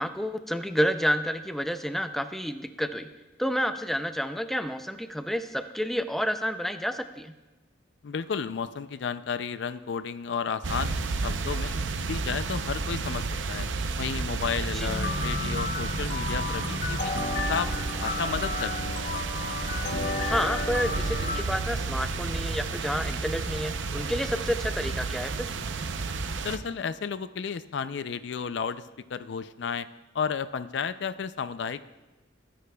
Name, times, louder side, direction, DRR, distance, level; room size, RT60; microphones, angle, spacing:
voice 1, 0.0-3.1 3.4-7.3 14.7-14.9 20.2-25.5, equal, ahead, 8 dB, 0.4 m, -30 dB
voice 2, 8.0-10.9 11.2-11.7 12.0-13.7 14.0-17.2 17.5-19.0 26.4-29.9 30.1-31.8, left 6 dB, 65° left, 13 dB, 0.4 m, -32 dB
sound 1, 10.6-26.6, right 3 dB, 75° right, 0.6 m, -31 dB
sound 2, 14.9-21.4, left 4 dB, 40° left, 0.8 m, -33 dB
21.0 x 10.0 x 2.3 m, 1.1 s
head